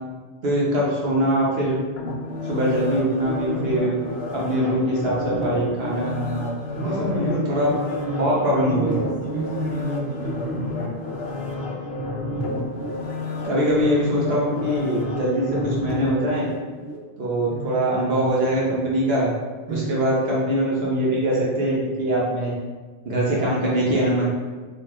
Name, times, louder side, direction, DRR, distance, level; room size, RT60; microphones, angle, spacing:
voice 1, 0.4-1.7 2.4-3.9 4.3-6.5 6.8-7.7 8.2-9.0 13.4-16.5 17.2-19.3 19.7-22.5 23.0-24.3, right 1 dB, 65° right, -5 dB, 1.1 m, -22 dB
sound 1, 2.0-17.0 17.4-17.6, left 1 dB, 65° left, 0.8 m, -30 dB
voice 2, 6.8-11.0 17.5-17.9 19.7-19.9, right 2 dB, 15° right, -7 dB, 1.0 m, -31 dB
3.8 x 3.4 x 2.9 m, 1.4 s
omnidirectional pair, 1.1 m